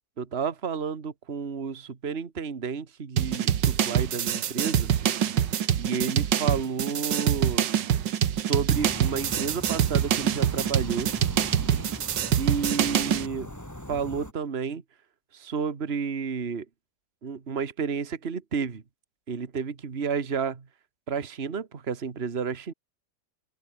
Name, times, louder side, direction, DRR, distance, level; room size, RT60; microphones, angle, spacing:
voice 1, 0.2-4.9 5.8-7.7 8.3-11.1 12.4-13.5 13.9-14.8 15.3-16.7 17.2-18.8 19.3-20.7 21.1-22.7, right 6 dB, 35° right, 1.8 m, -31 dB
sound 1, 3.2-13.3, right 9 dB, 80° right, 1.9 m, -25 dB
sound 2, 8.7-14.3, left 1 dB, 10° left, 3.4 m, -40 dB
open air
omnidirectional pair, 1.9 m